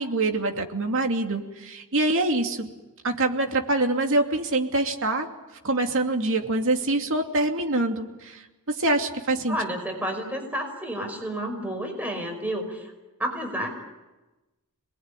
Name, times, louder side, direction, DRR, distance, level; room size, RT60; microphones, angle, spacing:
voice 1, 0.0-2.7 3.0-5.3 5.6-9.6, right 2 dB, 60° right, 4 dB, 2.7 m, -25 dB
voice 2, 9.5-12.9 13.2-13.8, equal, 5° right, 3 dB, 5.4 m, -30 dB
27.5 x 21.0 x 9.9 m, 1.1 s
head